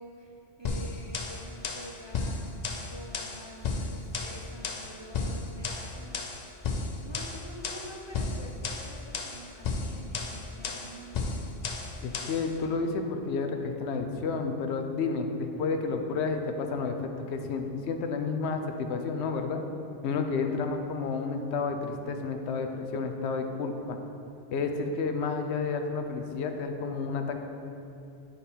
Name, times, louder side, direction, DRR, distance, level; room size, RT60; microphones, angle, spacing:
voice 1, 0.0-6.6 7.0-11.4, right 1 dB, 30° right, -3 dB, 0.5 m, -47 dB
sound 1, 0.6-12.5, left 3 dB, 55° left, 0.5 m, -34 dB
voice 2, 12.0-19.6 20.0-24.0 24.5-27.4, left 4 dB, 85° left, 5 dB, 0.9 m, -31 dB
9.0 x 3.4 x 4.3 m, 2.7 s
omnidirectional pair, 1.1 m